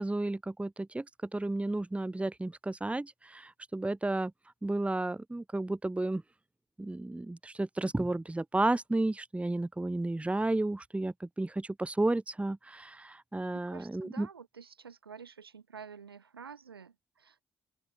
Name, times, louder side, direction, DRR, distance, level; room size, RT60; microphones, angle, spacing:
voice 1, 0.0-4.3 4.6-6.2 6.8-14.3, right 2 dB, 10° right, 0.9 m, -32 dB
voice 2, 13.5-17.4, right 6 dB, 85° right, 1.4 m, -49 dB
open air
figure-of-eight pair, 45°, 12 cm